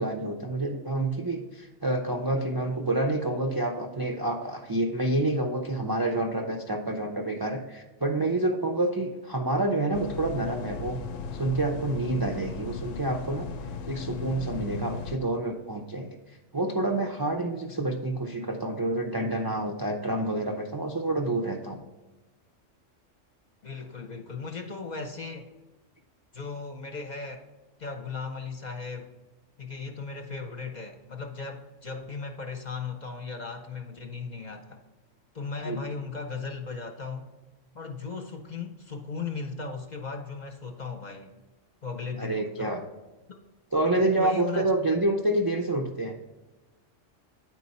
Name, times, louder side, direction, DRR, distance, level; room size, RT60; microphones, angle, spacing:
voice 1, 0.0-11.0 11.3-13.5 13.9-16.1 16.5-21.8 35.7-35.9 42.2-42.8 43.7-46.2, right 2 dB, 35° right, 1 dB, 0.3 m, -28 dB
sound 1, 9.9-15.2, left 5 dB, 85° left, 0.9 m, -37 dB
voice 2, 23.6-25.5 26.3-27.4 27.8-29.1 29.6-34.8 35.3-37.3 37.7-41.3 41.8-42.9 43.9-44.7, left 4 dB, 45° left, 3 dB, 0.7 m, -37 dB
9.6 x 4.5 x 4.1 m, 1.1 s
omnidirectional pair, 1.3 m